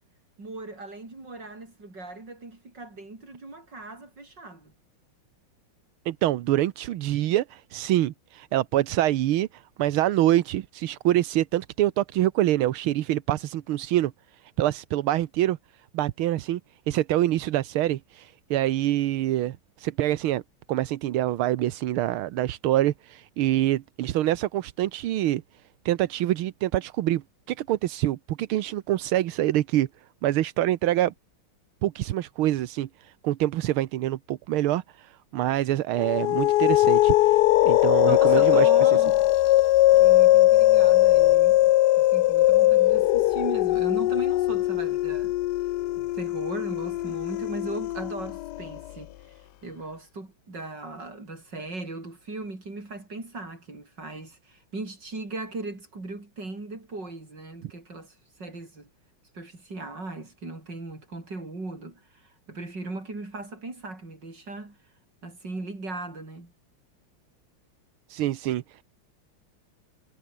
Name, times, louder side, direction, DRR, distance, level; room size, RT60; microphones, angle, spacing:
voice 1, 0.4-4.7 38.1-39.3 40.0-45.3 46.0-58.9 59.3-64.8 65.2-66.5, right 2 dB, 55° right, 6.9 m, -38 dB
voice 2, 6.0-14.1 14.6-15.6 15.9-16.6 16.9-20.4 20.7-25.4 25.8-29.9 30.2-31.1 31.8-38.7 68.1-68.8, right 14 dB, 85° right, 1.7 m, -25 dB
sound 1, 36.0-48.8, left 16 dB, 80° left, 0.9 m, -20 dB
omnidirectional pair, 2.3 m